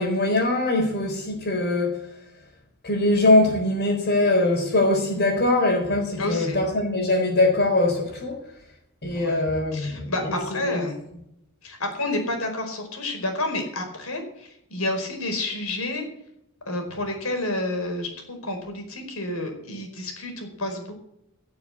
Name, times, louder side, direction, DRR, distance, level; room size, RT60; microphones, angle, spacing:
voice 1, 0.0-2.0 2.8-8.3 9.0-10.8, left 2 dB, 50° left, -4 dB, 4.1 m, -22 dB
voice 2, 6.2-6.6 9.1-9.4 9.7-11.0 11.6-16.1 16.7-21.0, left 2 dB, 80° left, 4 dB, 4.7 m, -30 dB
17.0 x 7.0 x 8.5 m, 0.77 s
head